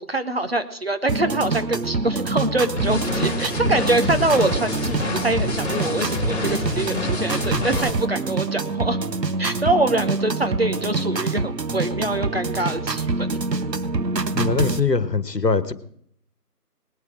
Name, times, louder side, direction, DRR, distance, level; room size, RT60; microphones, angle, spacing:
voice 1, 0.0-9.0 9.4-13.4, right 2 dB, 40° right, 8 dB, 1.0 m, -24 dB
sound 1, 1.1-14.8, right 3 dB, 90° right, 1.0 m, -26 dB
sound 2, 2.8-7.9, left 2 dB, 45° left, 2.8 m, -27 dB
voice 2, 14.3-15.7, left 4 dB, 85° left, 14 dB, 1.3 m, -22 dB
19.5 x 8.4 x 4.9 m, 0.66 s
figure-of-eight pair, 165°, 48 cm